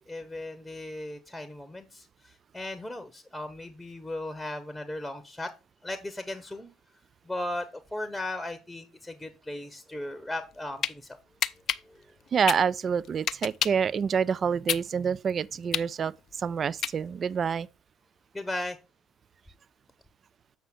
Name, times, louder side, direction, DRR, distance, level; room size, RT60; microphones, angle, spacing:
voice 1, 0.0-5.5 5.8-6.7 7.2-7.7 7.9-11.2 11.8-12.0 18.3-18.8, left 1 dB, 5° left, 0.9 m, -37 dB
sound 1, 10.4-10.9 11.4-13.9 14.3-17.3, left 9 dB, 50° left, 0.3 m, -30 dB
voice 2, 12.3-17.7, right 7 dB, 40° right, 0.3 m, -27 dB
7.4 x 5.7 x 3.7 m
figure-of-eight pair, 55°, 0 cm